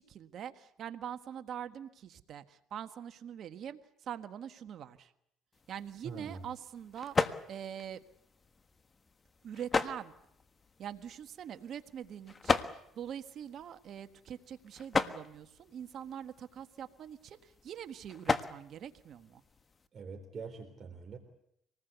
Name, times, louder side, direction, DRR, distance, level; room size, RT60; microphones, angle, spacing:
voice 1, 0.0-5.1 5.7-8.0 9.4-10.1 10.8-19.4, right 9 dB, 60° right, 10 dB, 1.5 m, -44 dB
sound 1, 5.5-19.9, left 4 dB, 30° left, 1.4 m, -38 dB
voice 2, 6.0-6.4 19.9-21.2, right 5 dB, 45° right, 3 dB, 3.7 m, -44 dB
26.0 x 19.5 x 8.2 m, 0.77 s
supercardioid pair, 85°, 0 cm